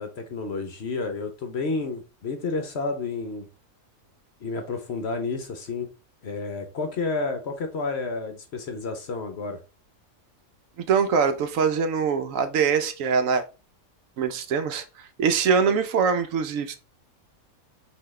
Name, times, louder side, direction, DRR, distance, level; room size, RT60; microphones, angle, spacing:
voice 1, 0.0-3.5 4.4-5.9 6.2-9.6, left 3 dB, 55° left, 0.9 m, -30 dB
voice 2, 10.9-13.4 14.2-16.8, right 6 dB, 70° right, 1.0 m, -23 dB
5.6 x 2.8 x 3.1 m
omnidirectional pair, 1.5 m